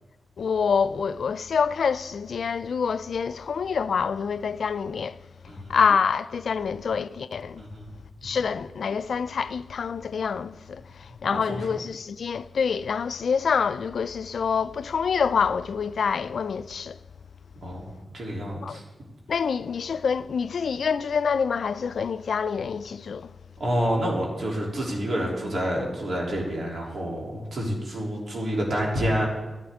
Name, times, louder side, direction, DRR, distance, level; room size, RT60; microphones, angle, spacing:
voice 1, 0.4-5.2 5.7-7.7 8.2-17.0 18.6-18.8 19.3-23.3, left 6 dB, 75° left, 0.3 m, -26 dB
voice 2, 5.5-5.8 7.6-7.9 11.1-11.2 11.5-11.6 17.6-17.8 18.1-18.8 23.6-29.3, equal, 60° right, 3.1 m, -28 dB
12.5 x 11.0 x 3.6 m
cardioid pair, 70°, 0 cm